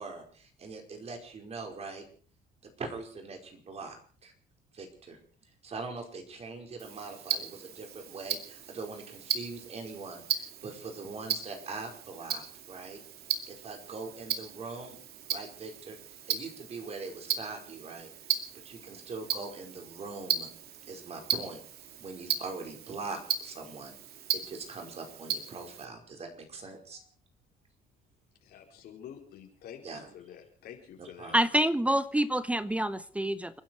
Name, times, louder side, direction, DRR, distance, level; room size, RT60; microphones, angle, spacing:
voice 1, 0.0-2.0 2.6-4.3 4.7-5.2 5.6-13.0 13.5-15.0 15.3-18.1 18.6-20.5 20.9-21.6 22.0-23.9 24.3-27.0 29.8-30.0 31.0-31.4, right 3 dB, 40° right, 5.0 m, -42 dB
Tick-tock, 6.8-25.9, right 8 dB, 65° right, 2.4 m, -37 dB
voice 2, 28.4-31.3, left 9 dB, 70° left, 4.8 m, -48 dB
voice 3, 31.3-33.6, right 1 dB, 10° right, 0.8 m, -27 dB
29.5 x 10.5 x 4.6 m
cardioid pair, 110°, 17 cm